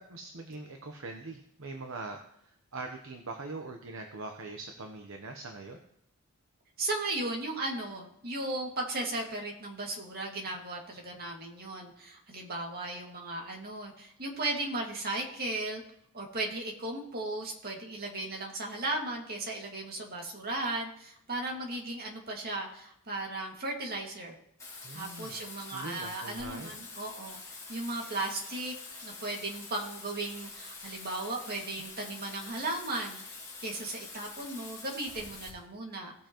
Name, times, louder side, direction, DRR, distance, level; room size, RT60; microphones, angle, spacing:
voice 1, 0.0-5.8 24.8-25.4 25.7-26.8, right 3 dB, 60° right, 3 dB, 1.0 m, -42 dB
voice 2, 6.8-15.8 16.1-24.4 24.9-28.7 29.0-33.2 33.6-36.1, right 2 dB, 45° right, 0 dB, 2.2 m, -36 dB
Bathtub (filling or washing), 24.6-35.5, left 3 dB, 15° left, 4.4 m, -46 dB
18.0 x 6.8 x 3.1 m, 0.74 s
head